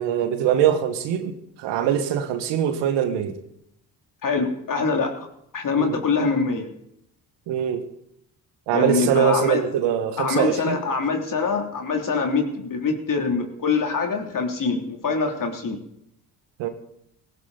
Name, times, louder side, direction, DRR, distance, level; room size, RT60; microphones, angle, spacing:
voice 1, 0.0-3.4 5.8-6.0 7.5-7.8 8.7-10.8 16.6-16.7, right 9 dB, 80° right, 8 dB, 1.8 m, -23 dB
voice 2, 4.2-5.3 5.5-6.7 8.7-9.6 10.2-15.8, left 4 dB, 50° left, 3 dB, 3.3 m, -24 dB
16.5 x 16.5 x 4.2 m, 0.77 s
supercardioid pair, 60°, 43 cm